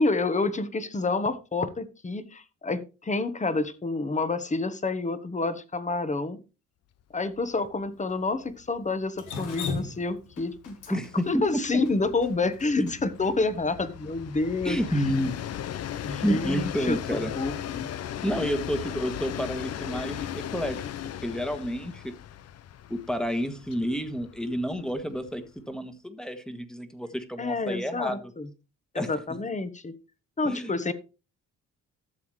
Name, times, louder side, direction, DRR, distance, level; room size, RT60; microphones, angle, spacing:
voice 1, 0.0-6.4 7.1-11.0 11.3-15.0 16.0-17.9 27.4-28.5 28.9-30.0 30.4-30.9, left 3 dB, 25° left, 13 dB, 1.2 m, -28 dB
Train, 7.3-7.5 7.8-7.9 8.2-25.6, left 10 dB, 55° left, 0.7 m, -38 dB
Drip, 9.2-13.3, left 4 dB, 90° left, 2.2 m, -36 dB
voice 2, 10.9-11.8 12.8-12.9 14.6-15.4 16.2-17.3 18.2-20.8 21.2-22.1 22.9-28.2 28.9-29.1 30.4-30.8, equal, ahead, 9 dB, 1.5 m, -30 dB
12.5 x 7.1 x 3.2 m, 0.31 s
cardioid pair, 90°, 30 cm